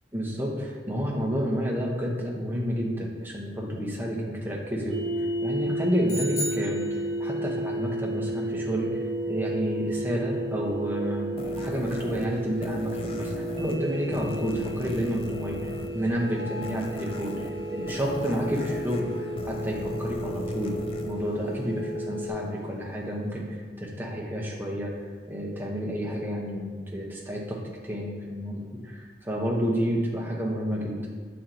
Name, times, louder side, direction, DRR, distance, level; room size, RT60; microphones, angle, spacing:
voice 1, 0.1-20.7 21.0-24.9 25.3-27.6 27.8-31.0, equal, 10° right, -2 dB, 1.0 m, -30 dB
sound 1, 4.9-22.3, right 1 dB, 80° right, 1.0 m, -33 dB
sound 2, 6.1-7.5, equal, 45° left, 1.5 m, -35 dB
sound 3, 11.4-22.2, left 2 dB, 30° left, 0.4 m, -39 dB
6.4 x 4.3 x 3.9 m, 1.5 s
head